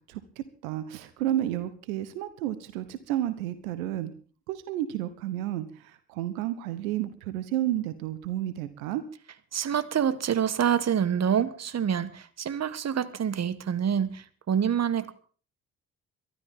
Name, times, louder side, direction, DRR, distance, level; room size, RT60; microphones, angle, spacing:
voice 1, 0.6-4.1 4.5-9.0, right 13 dB, 75° right, 14 dB, 1.2 m, -31 dB
voice 2, 9.5-15.1, right 8 dB, 35° right, 17 dB, 1.4 m, -27 dB
23.0 x 13.0 x 3.7 m, 0.41 s
figure-of-eight pair, 40°, 42 cm